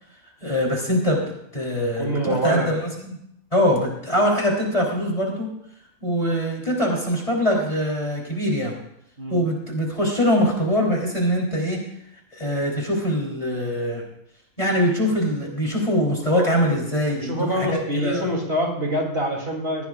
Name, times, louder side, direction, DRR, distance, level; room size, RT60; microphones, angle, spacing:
voice 1, 0.4-1.2 1.5-3.2 3.5-5.5 6.0-8.7 9.3-11.8 12.3-14.0 14.6-18.3, equal, 25° left, -2 dB, 3.5 m, -23 dB
voice 2, 1.8-2.8 9.2-9.4 17.1-19.8, right 1 dB, 45° right, -1 dB, 3.3 m, -25 dB
20.0 x 16.0 x 2.4 m, 0.75 s
omnidirectional pair, 1.4 m